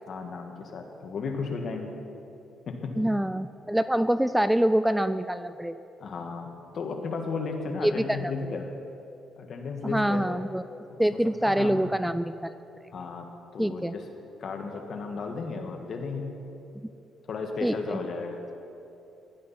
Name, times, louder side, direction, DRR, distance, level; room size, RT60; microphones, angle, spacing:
voice 1, 0.1-1.9 2.7-2.9 6.0-8.7 9.4-10.2 10.9-11.0 11.4-11.9 12.9-13.3 13.5-14.0 14.4-16.3 17.3-18.4, left 4 dB, 60° left, 3 dB, 1.6 m, -34 dB
voice 2, 3.0-5.8 7.8-8.3 9.8-10.6 11.0-12.5 13.6-13.9 17.6-18.0, right 1 dB, 5° right, 12 dB, 0.3 m, -25 dB
16.0 x 11.5 x 4.3 m, 2.8 s
cardioid pair, 90°, 0 cm